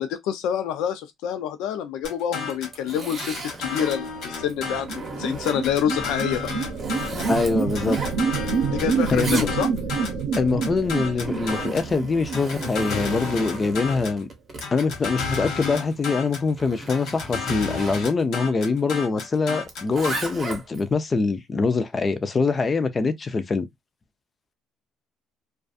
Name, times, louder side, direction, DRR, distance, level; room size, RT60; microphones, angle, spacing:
voice 1, 0.0-4.9 5.2-6.5 8.7-9.7, left 9 dB, 80° left, 0.5 m, -27 dB
sound 1, 2.0-2.8 3.2-5.1 5.5-7.4 7.8-11.9 12.3-14.2 14.6-16.5 16.9-20.2, left 4 dB, 60° left, 0.9 m, -32 dB
Zipper (clothing), 2.4-4.0 4.5-5.8 6.4-8.6 8.8-10.0 10.9-18.0 19.6-20.9, right 3 dB, 25° right, 0.6 m, -36 dB
sound 2, 3.7-13.5, right 5 dB, 70° right, 0.6 m, -28 dB
voice 2, 7.1-8.0 9.1-9.5 10.4-14.3 14.7-23.7, left 4 dB, 20° left, 0.3 m, -24 dB
2.4 x 2.3 x 2.4 m
cardioid pair, 160°, 0 cm